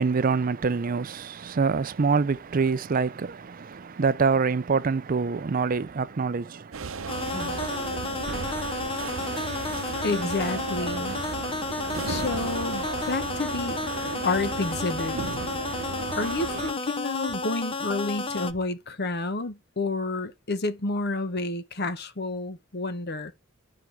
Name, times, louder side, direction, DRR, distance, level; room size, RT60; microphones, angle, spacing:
voice 1, 0.0-6.8, right 5 dB, 40° right, 0.5 m, -25 dB
sound 1, 6.7-16.7, right 4 dB, 70° right, 0.8 m, -34 dB
sound 2, 7.1-18.5, left 3 dB, 25° left, 0.7 m, -32 dB
voice 2, 10.0-11.2 12.1-13.8 14.2-15.2 16.2-23.3, left 3 dB, 50° left, 1.0 m, -30 dB
12.0 x 4.8 x 4.6 m
head